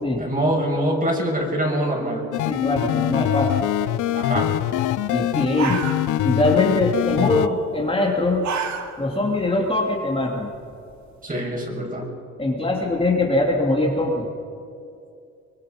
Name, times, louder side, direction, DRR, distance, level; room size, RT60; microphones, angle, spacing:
voice 1, 0.2-2.3 4.1-4.5 11.2-12.0, right 1 dB, 30° right, 0 dB, 6.6 m, -24 dB
sound 1, 2.3-7.5, left 13 dB, 85° left, 0.7 m, -23 dB
voice 2, 2.5-3.5 5.1-5.8 6.2-8.5 9.0-10.5 12.4-14.2, left 2 dB, 20° left, -2 dB, 3.0 m, -22 dB
sound 2, 5.1-5.2 5.4-6.4 6.7-7.1 8.1-9.2 9.6-9.7 10.2-11.2, right 6 dB, 65° right, 2.5 m, -30 dB
24.5 x 21.0 x 5.4 m, 2.5 s
cardioid pair, 90°, 30 cm